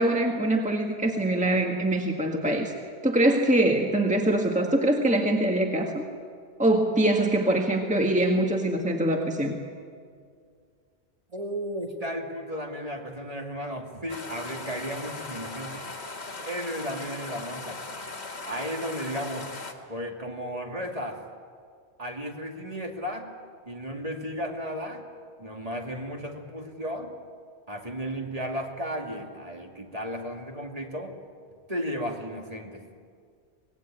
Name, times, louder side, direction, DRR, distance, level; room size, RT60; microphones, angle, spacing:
voice 1, 0.0-2.7 3.0-6.0 6.6-9.5, right 1 dB, 5° right, 2 dB, 1.7 m, -23 dB
voice 2, 11.3-15.8 16.5-17.8 18.4-19.5 19.9-21.2 22.0-23.3 23.7-25.1 25.4-27.1 27.7-31.2 31.7-32.9, equal, 35° right, 1 dB, 2.6 m, -34 dB
sound 1, 14.1-19.7, left 3 dB, 70° left, 2.2 m, -38 dB
24.5 x 20.0 x 9.1 m, 2.1 s
omnidirectional pair, 1.1 m